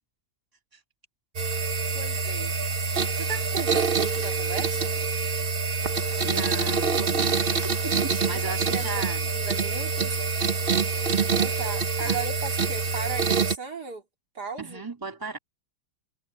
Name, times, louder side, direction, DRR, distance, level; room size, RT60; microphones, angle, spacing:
sound 1, 1.4-13.6, right 5 dB, 35° right, 1.1 m, -26 dB
voice 1, 1.9-2.5 3.1-4.9 7.9-10.2 11.3-14.0 14.4-14.8, right 4 dB, 55° right, 3.5 m, -36 dB
voice 2, 6.2-9.3 12.0-12.2 14.6-15.4, right 3 dB, 10° right, 2.7 m, -36 dB
omnidirectional pair, 2.1 m